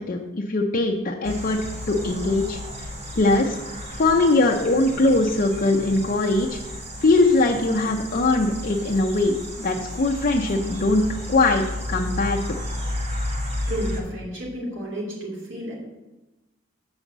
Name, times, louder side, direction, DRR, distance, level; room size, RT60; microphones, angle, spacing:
voice 1, 0.1-1.6 1.9-2.6 3.2-3.6 4.0-6.6 7.0-11.0 11.3-11.6 11.9-12.4, left 2 dB, 45° left, 0 dB, 0.6 m, -21 dB
sound 1, 1.2-14.0, left 1 dB, 35° right, 1.3 m, -33 dB
voice 2, 13.7-15.7, right 1 dB, 65° right, -2 dB, 2.9 m, -31 dB
7.0 x 5.4 x 7.3 m, 1.1 s
head